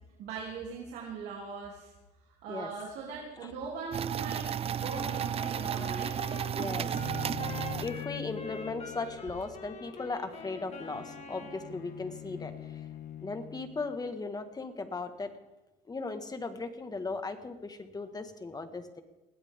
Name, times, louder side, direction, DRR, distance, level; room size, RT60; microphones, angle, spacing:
voice 1, 0.2-1.9 2.2-6.1, right 5 dB, 85° right, -4 dB, 3.2 m, -40 dB
sound 1, 3.9-8.3, right 9 dB, 35° right, 0.4 m, -33 dB
Wind instrument woodwind instrument, 4.8-11.8, left 4 dB, 40° left, 1.9 m, -46 dB
voice 2, 6.5-7.0 7.8-12.9 13.2-15.3 15.9-19.0, left 3 dB, 25° left, 8 dB, 1.8 m, -37 dB
Bowed string instrument, 6.9-14.0, left 11 dB, 60° left, 1.4 m, -44 dB
21.0 x 17.0 x 3.8 m, 1.1 s
cardioid pair, 110°, 17 cm